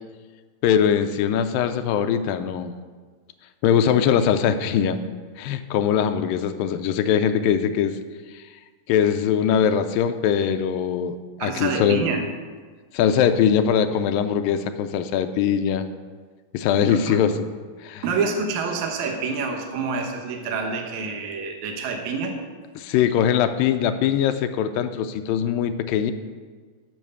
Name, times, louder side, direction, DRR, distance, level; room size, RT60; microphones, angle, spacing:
voice 1, 0.6-2.7 3.6-5.0 5.4-8.0 8.3-8.4 8.9-12.1 12.9-15.9 16.5-17.5 17.8-18.0 22.8-26.1, left 8 dB, 85° left, 9 dB, 2.4 m, -21 dB
voice 2, 11.4-12.3 16.8-17.2 18.0-22.4, right 4 dB, 65° right, 3 dB, 2.2 m, -27 dB
11.0 x 6.4 x 6.7 m, 1.5 s
omnidirectional pair, 4.0 m